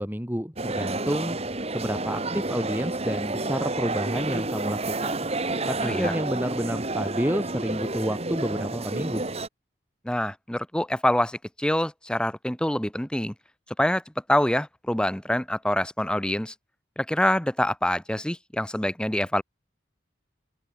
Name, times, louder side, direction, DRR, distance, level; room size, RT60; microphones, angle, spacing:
voice 1, 0.0-1.4 1.7-5.1 5.7-9.2, equal, 10° right, 2.2 m, -29 dB
sound 1, 0.6-9.5, right 2 dB, 35° right, 2.4 m, -30 dB
voice 2, 5.8-6.1 10.0-13.3 13.8-14.0 14.3-16.5 17.0-19.4, left 1 dB, 5° left, 0.8 m, -25 dB
open air
head